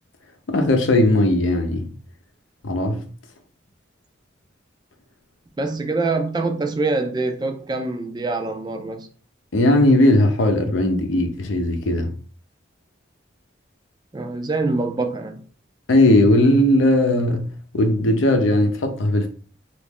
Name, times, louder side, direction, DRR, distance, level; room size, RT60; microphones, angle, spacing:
voice 1, 0.5-1.9 2.6-3.1 9.5-12.1 15.9-19.3, left 1 dB, 85° left, 0.6 m, -18 dB
voice 2, 5.6-9.1 14.1-15.4, right 3 dB, 20° right, 0.3 m, -25 dB
3.0 x 2.5 x 3.5 m
head